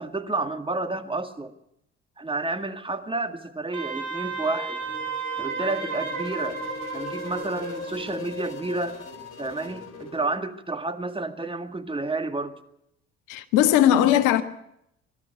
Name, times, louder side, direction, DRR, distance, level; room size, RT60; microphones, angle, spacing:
voice 1, 0.0-1.5 2.2-4.8 5.4-6.6 6.9-9.0 9.4-12.6, right 2 dB, 15° right, 1.9 m, -30 dB
Wind instrument woodwind instrument, 3.7-7.9, right 5 dB, 60° right, 6.2 m, -33 dB
sound 1, 4.2-10.3, left 6 dB, 50° left, 4.1 m, -40 dB
voice 2, 13.3-14.4, left 11 dB, 65° left, 1.4 m, -19 dB
24.0 x 13.0 x 9.4 m
hypercardioid pair, 55°, 33 cm